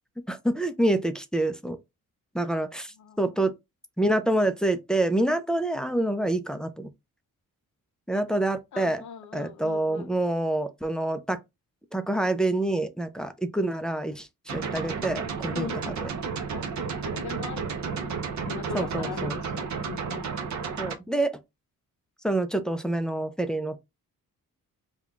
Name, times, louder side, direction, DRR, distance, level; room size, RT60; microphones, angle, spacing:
voice 1, 0.3-1.8 2.3-3.5 4.0-6.9 8.1-9.0 9.3-11.4 11.9-15.9 18.7-19.3 20.8-21.4 22.2-23.8, right 1 dB, ahead, 0.4 m, -27 dB
voice 2, 8.7-10.1 15.5-16.0 16.5-18.2 18.5-20.3, left 7 dB, 60° left, 0.6 m, -40 dB
sound 1, 14.5-21.0, right 5 dB, 55° right, 0.7 m, -32 dB
5.4 x 2.3 x 2.4 m
cardioid pair, 115°, 34 cm